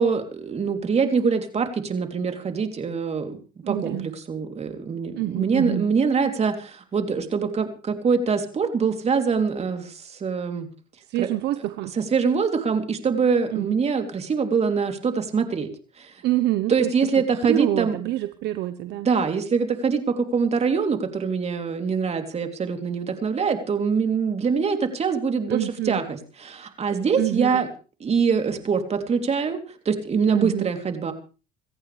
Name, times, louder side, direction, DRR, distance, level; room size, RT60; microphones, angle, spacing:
voice 1, 0.0-3.4 3.7-10.7 11.2-11.3 12.0-15.7 16.0-16.1 16.7-18.0 19.0-27.7 28.0-29.6 29.8-31.1, right 5 dB, 35° right, 5 dB, 3.2 m, -24 dB
voice 2, 3.6-4.1 5.1-5.9 11.1-11.9 13.5-13.8 16.2-16.9 17.5-19.1 25.5-26.0 27.1-27.6 30.3-30.7, right 15 dB, 65° right, 11 dB, 1.1 m, -26 dB
27.0 x 14.5 x 3.4 m, 0.36 s
supercardioid pair, 90°, 19 cm